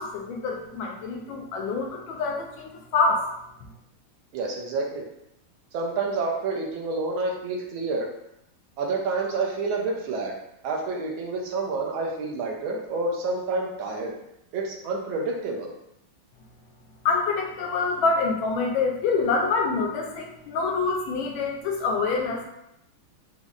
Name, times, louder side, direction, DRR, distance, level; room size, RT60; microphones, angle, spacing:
voice 1, 0.0-3.2 17.0-22.5, left 4 dB, 75° left, 0 dB, 1.3 m, -26 dB
voice 2, 4.3-5.0 5.7-8.1 8.8-10.3 10.6-14.1 14.5-15.7, right 3 dB, 80° right, 0 dB, 1.4 m, -28 dB
5.1 x 2.1 x 2.4 m, 0.81 s
omnidirectional pair, 2.3 m